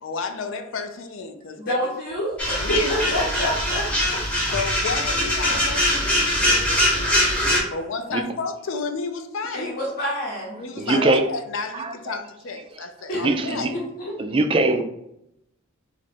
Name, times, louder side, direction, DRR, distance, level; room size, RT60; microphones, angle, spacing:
voice 1, 0.0-1.8 2.6-3.2 4.4-6.8 7.7-9.7 10.6-13.7, left 4 dB, 65° left, 8 dB, 0.4 m, -31 dB
voice 2, 1.5-4.2 7.7-7.8 9.5-11.1 13.1-14.2, equal, 45° left, -6 dB, 0.9 m, -28 dB
sound 1, 2.4-7.6, left 1 dB, 5° left, 0.9 m, -22 dB
voice 3, 10.8-11.2 11.7-12.2 13.1-13.7 14.2-14.8, right 2 dB, 25° right, 7 dB, 0.3 m, -22 dB
2.9 x 2.4 x 4.2 m, 0.82 s
head